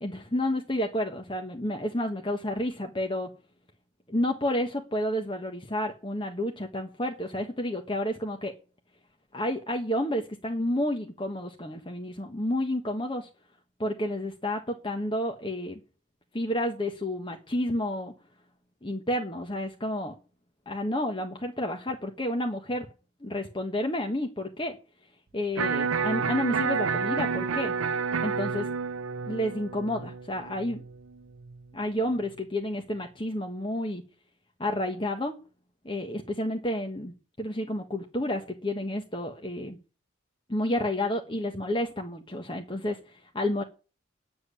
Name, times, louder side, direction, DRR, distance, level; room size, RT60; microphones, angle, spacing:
voice 1, 0.0-3.3 4.1-8.5 9.3-13.3 13.8-15.8 16.3-18.1 18.8-20.1 20.7-22.9 23.2-24.8 25.3-27.7 28.2-28.7 29.2-30.8 31.7-34.0 34.6-35.4 35.8-39.8 40.5-43.6, left 1 dB, 25° left, 3 dB, 1.3 m, -30 dB
Electric guitar, 25.6-31.6, right 5 dB, 90° right, 0.7 m, -30 dB
10.0 x 7.7 x 9.7 m, 0.35 s
head